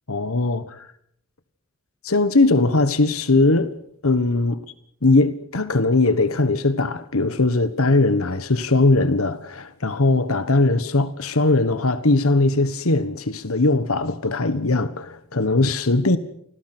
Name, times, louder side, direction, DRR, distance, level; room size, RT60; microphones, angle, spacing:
voice 1, 0.1-0.9 2.0-3.7 4.0-4.6 5.0-16.2, left 2 dB, 85° left, 1.4 m, -20 dB
29.0 x 21.5 x 6.2 m
head